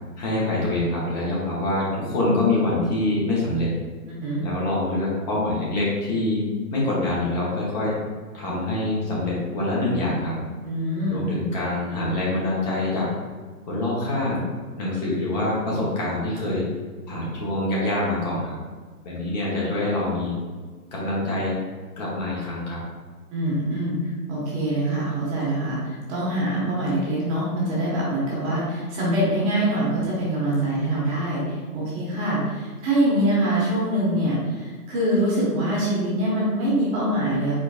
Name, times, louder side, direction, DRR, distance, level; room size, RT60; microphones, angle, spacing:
voice 1, 0.2-3.7 4.4-8.0 8.3-10.4 11.1-13.1 13.7-14.4 14.8-16.7 17.1-18.5 19.0-20.3 20.9-21.6 22.0-22.8, left 2 dB, 25° left, -6 dB, 1.0 m, -25 dB
voice 2, 4.1-4.5 10.6-11.2 23.3-37.6, right 1 dB, 20° right, -6 dB, 1.1 m, -24 dB
4.6 x 4.1 x 2.4 m, 1.4 s
hypercardioid pair, 145°, 47 cm